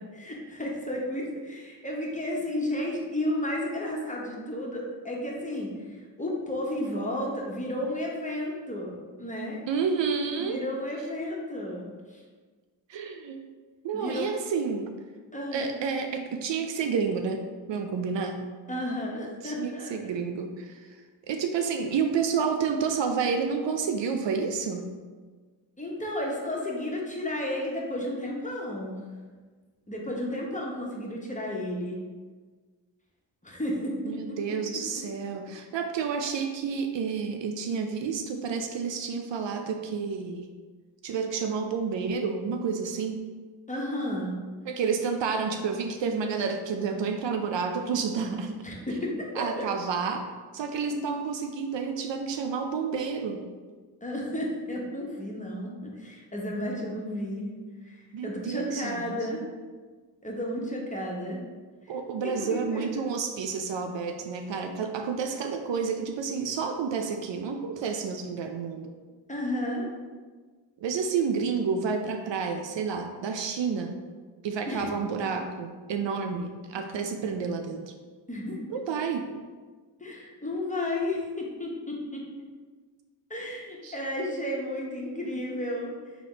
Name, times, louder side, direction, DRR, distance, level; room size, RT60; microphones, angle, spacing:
voice 1, 0.0-9.6 10.4-12.2 13.9-14.3 15.3-15.7 18.7-19.9 25.8-29.1 29.9-32.0 33.4-34.4 43.7-44.3 48.6-49.7 54.0-57.5 57.8-59.5 60.2-61.4 61.8-61.9 62.2-62.8 69.3-69.9 74.7-75.0 78.3-78.6 80.0-82.2 83.3-85.9, left 1 dB, 15° left, -2 dB, 1.1 m, -32 dB
voice 2, 9.7-10.6 12.9-13.4 13.8-14.9 15.5-18.4 19.4-20.8 21.3-24.9 34.0-40.5 41.0-43.2 44.7-48.6 49.4-53.5 58.1-59.1 61.9-68.9 70.8-73.9 74.4-77.9 78.7-79.3 83.8-84.0, right 5 dB, 65° right, 5 dB, 0.5 m, -30 dB
3.3 x 3.1 x 3.9 m, 1.4 s
supercardioid pair, 40°, 48 cm